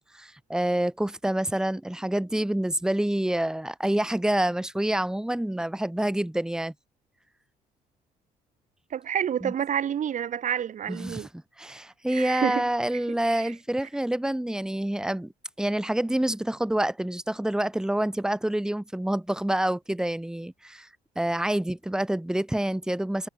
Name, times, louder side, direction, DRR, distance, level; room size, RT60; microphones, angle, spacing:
voice 1, 0.0-6.7 9.4-9.5 10.9-11.3 11.6-15.3 15.6-20.9 21.2-23.3, right 1 dB, 5° right, 1.9 m, -27 dB
voice 2, 8.9-11.3 12.1-12.6 13.3-13.5, right 9 dB, 50° right, 2.0 m, -28 dB
cardioid pair, 100°, 16 cm